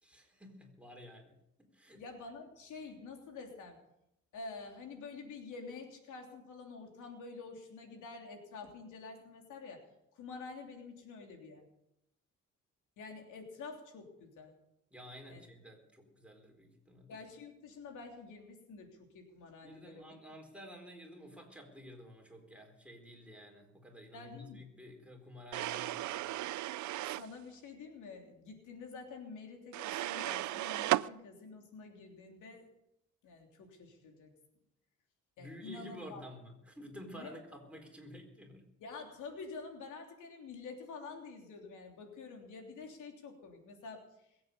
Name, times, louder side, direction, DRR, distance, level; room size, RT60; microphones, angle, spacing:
voice 1, 0.0-2.0 14.9-17.1 19.6-26.3 35.4-38.7, left 1 dB, 5° right, 1 dB, 4.4 m, -51 dB
voice 2, 2.0-3.8 4.3-9.8 10.1-11.6 13.0-14.5 15.3-15.4 17.1-20.1 24.1-24.6 27.1-32.7 33.2-34.3 35.4-36.2 37.1-37.3 38.8-44.1, left 4 dB, 80° left, 3 dB, 3.2 m, -48 dB
sound 1, 25.5-27.3 29.7-31.1, right 16 dB, 70° right, 0.5 m, -35 dB
22.0 x 8.7 x 6.9 m, 0.83 s
cardioid pair, 90°, 30 cm